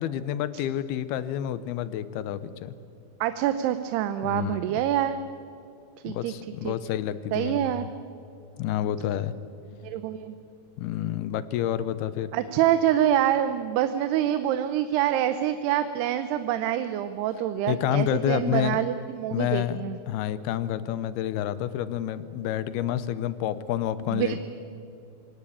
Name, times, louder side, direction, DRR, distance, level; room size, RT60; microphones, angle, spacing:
voice 1, 0.0-2.7 4.2-4.8 6.1-7.9 8.6-9.3 10.8-12.3 17.7-18.8 19.3-19.8 20.1-24.4, left 11 dB, 85° left, 15 dB, 2.7 m, -29 dB
voice 2, 3.2-5.2 6.0-6.8 7.3-7.9 9.8-10.4 12.3-20.0 24.1-24.4, right 11 dB, 90° right, 10 dB, 2.9 m, -26 dB
26.0 x 19.0 x 8.6 m, 2.7 s
omnidirectional pair, 4.6 m